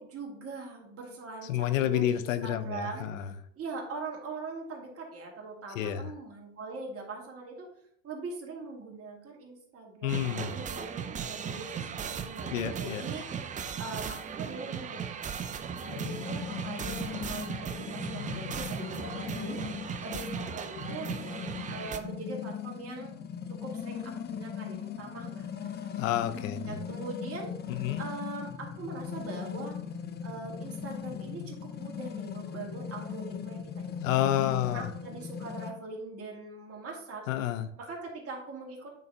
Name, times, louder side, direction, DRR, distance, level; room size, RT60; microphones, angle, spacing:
voice 1, 0.0-7.7 8.0-19.6 20.0-21.1 21.7-23.2 23.5-26.1 26.7-29.8 30.2-34.2 34.7-37.3 37.8-38.9, right 3 dB, 35° right, -1 dB, 2.2 m, -42 dB
voice 2, 1.5-3.3 5.8-6.1 10.0-10.6 12.5-13.0 26.0-26.8 27.7-28.1 34.0-34.9 37.3-37.7, left 11 dB, 85° left, 11 dB, 0.7 m, -29 dB
sound 1, 10.1-22.0, right 7 dB, 20° right, 0.4 m, -37 dB
sound 2, 15.9-35.7, left 7 dB, 25° left, 0.6 m, -39 dB
8.9 x 3.9 x 2.8 m, 0.66 s
hypercardioid pair, 90°, 38 cm